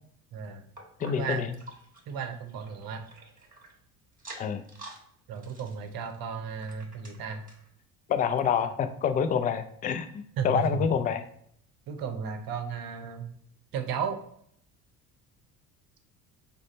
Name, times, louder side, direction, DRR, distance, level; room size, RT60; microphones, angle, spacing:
voice 1, 0.3-0.7 1.1-1.4 2.1-3.0 5.3-7.4 10.4-10.9 11.9-13.3 13.7-14.2, right 6 dB, 50° right, 6 dB, 0.8 m, -34 dB
sound 1, 0.8-3.7 4.1-5.0 5.3-7.7 8.2-8.3 8.5-8.6 9.3-9.4, right 2 dB, 20° right, 1.6 m, -49 dB
voice 2, 1.0-1.5 4.4-4.6 8.1-11.2, left 7 dB, 20° left, 9 dB, 0.3 m, -27 dB
4.9 x 2.2 x 4.1 m, 0.66 s
hypercardioid pair, 60°, 46 cm